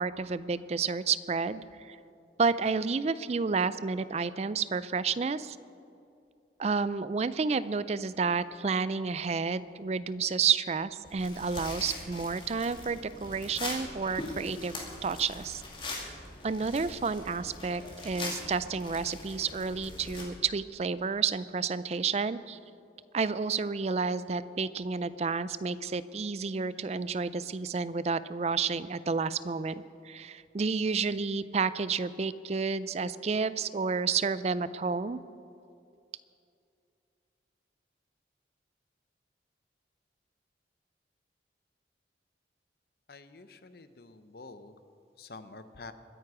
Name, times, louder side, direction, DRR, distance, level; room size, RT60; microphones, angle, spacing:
voice 1, 0.0-2.0 2.4-5.6 6.6-15.6 16.4-22.6 23.1-35.2, right 5 dB, 35° right, 16 dB, 0.4 m, -30 dB
sound 1, 11.0-20.2, left 2 dB, 30° left, 2.4 m, -41 dB
voice 2, 43.1-44.7 45.2-45.9, left 3 dB, 55° left, 11 dB, 0.8 m, -48 dB
22.0 x 9.4 x 4.9 m, 2.5 s
head